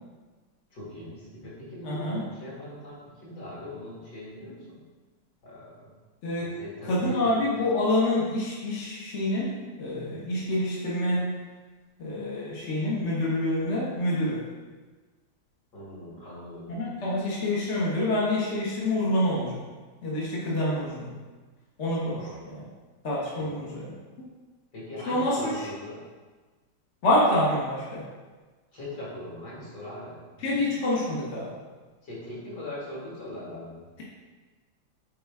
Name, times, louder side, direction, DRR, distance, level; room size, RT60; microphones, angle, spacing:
voice 1, 0.7-4.8 5.4-5.9 6.4-7.6 15.7-16.8 22.1-22.4 23.4-23.6 24.7-26.0 28.7-30.6 32.0-33.9, left 1 dB, 55° left, -7 dB, 3.1 m, -41 dB
voice 2, 1.8-2.2 6.2-6.5 6.9-11.4 12.0-14.4 16.7-19.6 20.0-21.1 21.8-22.2 22.5-22.6 23.0-23.9 25.1-25.7 27.0-28.0 30.4-31.5, left 1 dB, 40° left, -6 dB, 1.3 m, -27 dB
8.7 x 4.7 x 3.6 m, 1.4 s
omnidirectional pair, 2.1 m